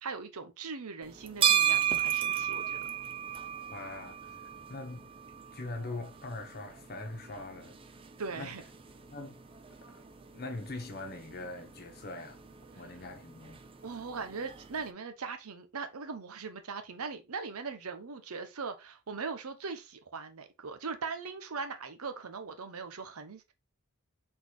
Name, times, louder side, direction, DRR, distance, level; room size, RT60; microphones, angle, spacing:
voice 1, 0.0-2.8 8.2-8.6 13.8-23.5, right 4 dB, 75° right, 0.8 m, -40 dB
sound 1, 1.0-14.9, right 9 dB, 25° right, 0.4 m, -35 dB
voice 2, 3.7-4.3 4.7-5.1 5.5-7.8 8.3-8.5 9.1-9.4 9.9-10.0 10.3-12.4 12.8-13.6, left 2 dB, 45° left, 1.1 m, -42 dB
4.1 x 3.9 x 3.1 m
head